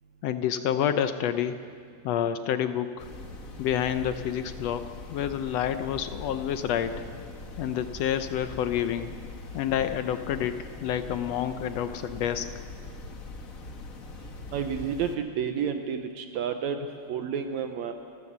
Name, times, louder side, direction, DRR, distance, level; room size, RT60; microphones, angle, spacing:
voice 1, 0.2-1.6 2.0-3.1 3.6-7.0 7.6-9.2 9.5-12.6, left 9 dB, 75° left, 10 dB, 1.6 m, -28 dB
sound 1, 3.0-15.2, left 3 dB, 40° left, 1.2 m, -42 dB
voice 2, 14.5-17.9, right 7 dB, 75° right, 7 dB, 2.0 m, -30 dB
28.5 x 14.5 x 6.8 m, 2.3 s
omnidirectional pair, 3.4 m